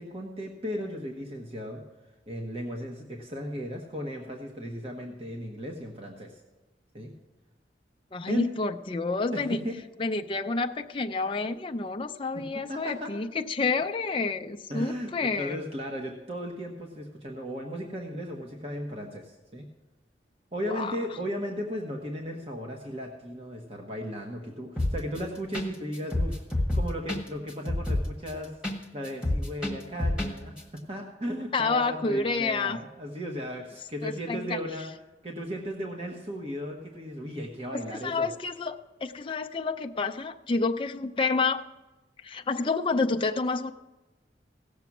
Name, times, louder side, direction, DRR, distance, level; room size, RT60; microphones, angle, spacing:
voice 1, 0.0-1.8 2.3-6.4 6.9-7.1 8.3-8.5 9.3-9.8 12.3-12.4 12.7-13.1 14.7-19.6 20.5-34.9 35.2-38.3, equal, 35° right, 1 dB, 1.2 m, -36 dB
voice 2, 8.1-9.6 10.0-15.6 20.6-21.0 31.5-32.8 34.0-34.6 38.0-38.8 39.0-41.6 42.2-43.7, left 3 dB, 30° left, 5 dB, 0.5 m, -29 dB
sound 1, 24.8-25.2 25.5-25.7 25.9-28.8 29.0-30.3 30.6-30.7, left 1 dB, 5° right, 1.5 m, -27 dB
17.0 x 6.9 x 6.0 m, 1.2 s
head